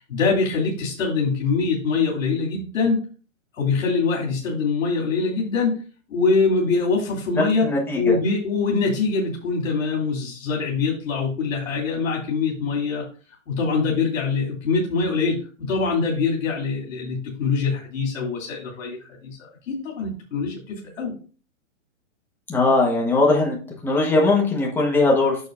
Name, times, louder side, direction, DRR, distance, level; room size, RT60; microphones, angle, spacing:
voice 1, 0.1-3.0 3.5-5.7 6.1-7.7 7.9-13.0 13.5-21.1, left 4 dB, 75° left, -1 dB, 3.1 m, -23 dB
voice 2, 7.4-8.2 22.5-23.6 23.8-25.5, left 2 dB, 5° left, -1 dB, 1.2 m, -20 dB
9.2 x 6.6 x 2.6 m, 0.38 s
hypercardioid pair, 160°, 39 cm